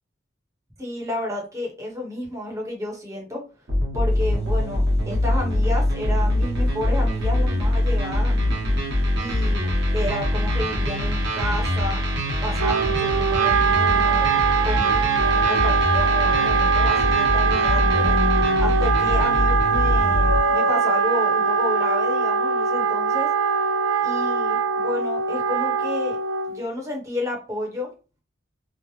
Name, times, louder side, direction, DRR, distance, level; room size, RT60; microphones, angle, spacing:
voice 1, 0.8-3.4 3.9-8.6 9.2-12.0 12.4-14.3 14.6-18.2 18.6-23.3 24.0-26.2 26.5-27.9, left 1 dB, 15° right, 0 dB, 0.9 m, -31 dB
sound 1, 3.7-20.4, left 1 dB, 60° right, 1.1 m, -23 dB
sound 2, 4.1-4.5 13.8-15.2 15.6-17.3 17.8-19.3 19.7-19.8 20.2-21.0, left 4 dB, 30° left, 0.4 m, -33 dB
Wind instrument woodwind instrument, 12.6-26.6, right 6 dB, 90° right, 0.3 m, -22 dB
3.0 x 2.0 x 3.1 m, 0.33 s
head